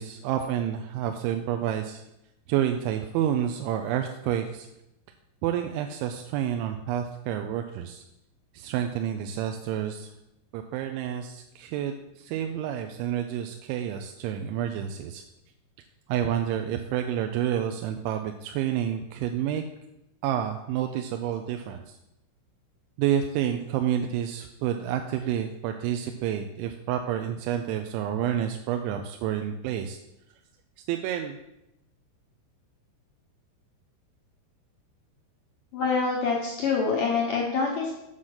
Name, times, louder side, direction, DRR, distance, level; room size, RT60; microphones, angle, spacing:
voice 1, 0.0-2.0 2.5-4.7 5.4-8.0 8.5-10.1 10.5-15.2 16.1-19.6 20.2-21.8 23.0-30.0 30.9-31.4, right 10 dB, 85° right, 5 dB, 2.9 m, -29 dB
voice 2, 35.7-38.0, left 4 dB, 75° left, -2 dB, 2.0 m, -26 dB
7.6 x 6.5 x 5.6 m, 0.86 s
omnidirectional pair, 5.3 m